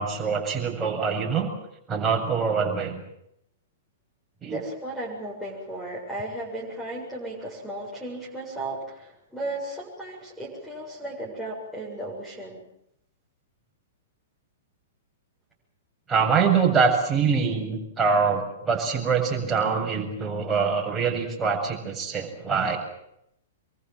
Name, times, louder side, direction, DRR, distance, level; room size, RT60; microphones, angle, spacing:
voice 1, 0.0-1.5 1.9-3.0 4.4-4.6 16.1-22.8, right 5 dB, 15° right, 0 dB, 7.6 m, -24 dB
voice 2, 4.4-12.6, right 1 dB, ahead, -8 dB, 7.6 m, -35 dB
26.5 x 23.5 x 7.7 m, 0.78 s
figure-of-eight pair, 105°, 0 cm